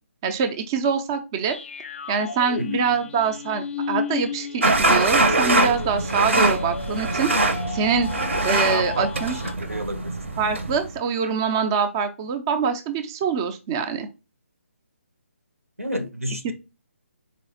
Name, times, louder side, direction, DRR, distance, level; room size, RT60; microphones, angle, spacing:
voice 1, 0.2-1.6 2.1-8.1 8.4-9.4 10.4-14.1 16.4-16.5, right 6 dB, 20° right, 0.3 m, -24 dB
sound 1, 1.4-9.5, left 6 dB, 50° left, 0.4 m, -33 dB
sound 2, 4.6-10.9, right 2 dB, 60° right, 0.7 m, -23 dB
voice 2, 8.7-10.1 15.8-16.5, equal, 85° right, 0.9 m, -30 dB
4.2 x 3.0 x 2.6 m
figure-of-eight pair, 145°, 8 cm